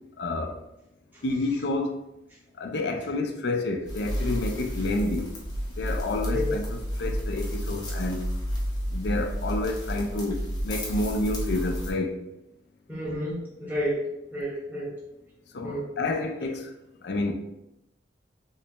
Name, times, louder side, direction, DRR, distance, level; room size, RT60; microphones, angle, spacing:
voice 1, 0.2-0.6 1.2-1.9 2.6-5.3 5.8-8.2 8.9-12.2 15.5-16.7 17.0-17.3, left 2 dB, 65° left, 4 dB, 0.5 m, -29 dB
sound 1, 3.9-11.9, equal, 25° left, 0.8 m, -31 dB
voice 2, 12.9-14.9 15.6-15.9, equal, 10° right, -8 dB, 1.3 m, -31 dB
3.2 x 3.2 x 2.9 m, 0.87 s
head